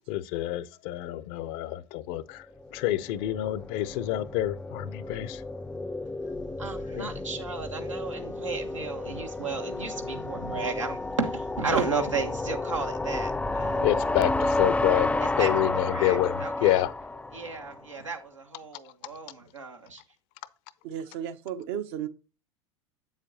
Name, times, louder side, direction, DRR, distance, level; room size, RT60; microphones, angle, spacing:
voice 1, 0.1-5.4 6.2-6.3 6.9-7.1 13.8-16.9 18.8-18.9, left 14 dB, 55° left, 0.7 m, -28 dB
sound 1, 2.6-17.8, left 2 dB, 10° left, 0.5 m, -31 dB
voice 2, 6.6-13.8 15.2-16.8 17.3-20.0, right 4 dB, 90° right, 1.3 m, -34 dB
voice 3, 20.8-22.1, right 9 dB, 60° right, 0.9 m, -33 dB
8.2 x 7.3 x 2.8 m
figure-of-eight pair, 80°, 16 cm